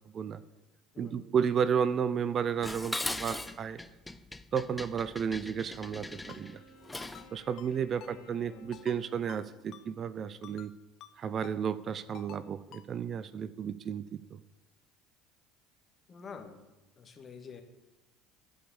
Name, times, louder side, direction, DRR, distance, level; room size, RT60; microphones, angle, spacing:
voice 1, 1.0-3.8 4.5-6.6 7.3-10.7 11.2-14.4, right 7 dB, 40° right, 16 dB, 0.5 m, -32 dB
Dishes pots and pans, 2.6-7.3, left 2 dB, 10° left, 0.6 m, -40 dB
Wind instrument woodwind instrument, 5.7-10.2, left 2 dB, 80° left, 2.0 m, -58 dB
Ringtone, 6.3-6.4 7.0-7.3 7.6-7.7 8.0-8.1 8.7-9.0 9.3-9.4 9.7-9.9 10.4-10.7 11.0-11.1 11.4-11.6 12.1-12.4 12.7-12.9, left 11 dB, 55° left, 0.7 m, -50 dB
voice 2, 7.9-9.0 16.1-16.7 17.0-17.6, left 5 dB, 35° left, 5 dB, 1.8 m, -48 dB
11.5 x 5.4 x 8.6 m, 1.0 s
hypercardioid pair, 70°, 0 cm